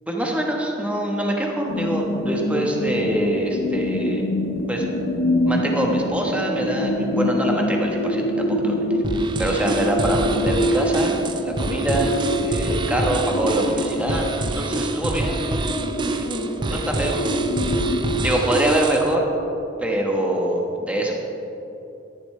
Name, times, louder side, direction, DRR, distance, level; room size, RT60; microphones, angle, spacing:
voice 1, 0.1-4.2 4.7-4.9 5.4-8.9 9.4-14.2 14.5-17.2 18.2-19.3 19.8-21.1, right 1 dB, 5° right, 0 dB, 1.2 m, -24 dB
sound 1, 1.7-18.3, left 1 dB, 80° left, 0.8 m, -25 dB
sound 2, 9.0-19.1, right 2 dB, 25° right, 0.4 m, -27 dB
13.5 x 11.0 x 3.3 m, 3.0 s
head